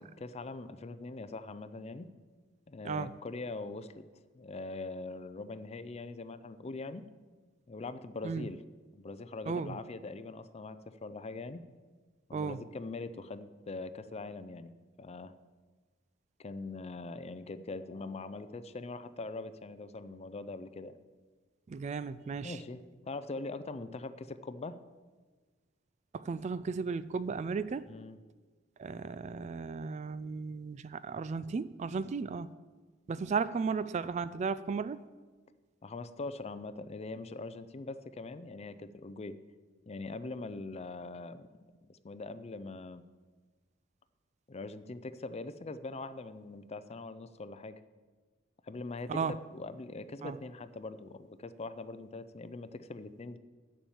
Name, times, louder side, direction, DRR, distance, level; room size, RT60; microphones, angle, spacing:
voice 1, 0.0-2.1 2.7-4.1 4.3-7.0 7.7-8.6 8.9-11.6 12.3-14.7 15.0-15.3 16.4-21.0 22.4-24.8 27.9-28.2 35.8-39.4 39.9-41.5 41.9-43.0 44.5-47.8 48.6-53.4, left 3 dB, 30° left, 13 dB, 0.5 m, -42 dB
voice 2, 9.5-9.8 12.3-12.6 21.7-22.6 26.1-27.9 28.8-32.5 33.1-35.0 49.1-49.3 50.2-50.4, right 5 dB, 35° right, 15 dB, 0.3 m, -35 dB
10.5 x 7.1 x 7.2 m, 1.4 s
head